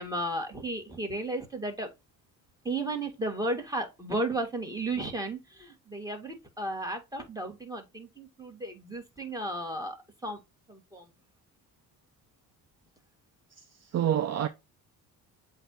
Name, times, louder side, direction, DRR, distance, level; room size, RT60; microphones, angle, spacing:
voice 1, 0.0-1.9 2.6-10.0 10.2-10.4 10.7-11.1, right 1 dB, 10° right, 1.9 m, -34 dB
voice 2, 13.6-14.5, right 10 dB, 40° right, 0.6 m, -28 dB
7.8 x 2.7 x 4.5 m
cardioid pair, 85°, 41 cm